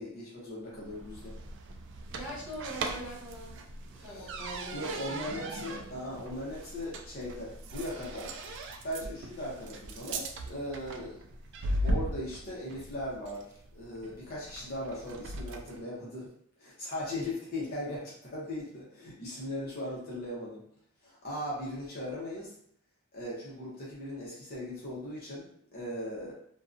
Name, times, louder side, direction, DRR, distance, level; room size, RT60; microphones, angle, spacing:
voice 1, 0.0-1.3 4.0-4.3 4.7-8.3 8.8-11.2 11.8-16.3 16.6-20.6 21.0-22.5 23.1-26.3, left 1 dB, 45° left, -6 dB, 0.8 m, -38 dB
sound 1, 0.8-15.8, right 1 dB, 55° right, 0.3 m, -39 dB
voice 2, 2.1-3.6 3.9-5.2 17.6-17.7, right 1 dB, 20° right, -9 dB, 1.2 m, -42 dB
2.6 x 2.3 x 2.5 m, 0.66 s
head